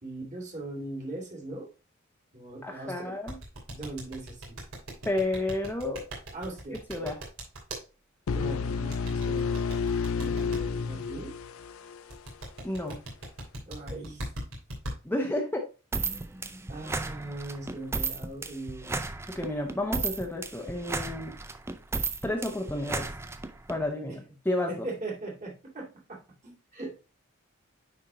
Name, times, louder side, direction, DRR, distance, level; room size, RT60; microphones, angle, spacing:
voice 1, 0.0-1.7 2.3-3.2 3.7-4.6 6.3-7.0 8.3-9.7 10.2-11.4 13.7-14.3 16.7-19.0 24.1-24.2 24.7-27.0, right 2 dB, 35° right, 0 dB, 2.3 m, -40 dB
voice 2, 2.6-3.4 5.1-6.1 6.9-7.2 12.6-13.0 15.0-15.6 19.3-21.3 22.2-23.1 23.7-24.7, left 1 dB, 10° left, 1 dB, 0.8 m, -31 dB
sound 1, 3.3-7.8 8.9-10.6 12.1-14.9, right 1 dB, 85° right, 2.8 m, -39 dB
sound 2, 8.3-12.1, left 5 dB, 90° left, 0.5 m, -30 dB
sound 3, 15.9-23.8, right 3 dB, 10° right, 0.4 m, -34 dB
9.6 x 4.4 x 2.7 m, 0.30 s
head